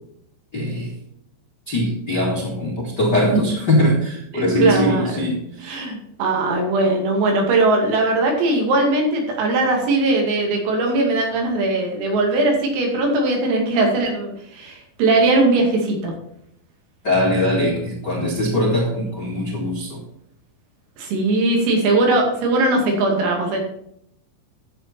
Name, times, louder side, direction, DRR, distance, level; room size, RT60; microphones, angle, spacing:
voice 1, 0.5-0.9 1.7-5.8 17.0-20.0, left 1 dB, 75° left, -3 dB, 0.9 m, -21 dB
voice 2, 4.4-5.2 5.7-16.1 21.0-23.6, right 2 dB, 90° right, 1 dB, 5.1 m, -20 dB
11.5 x 8.2 x 4.4 m, 0.74 s
omnidirectional pair, 5.8 m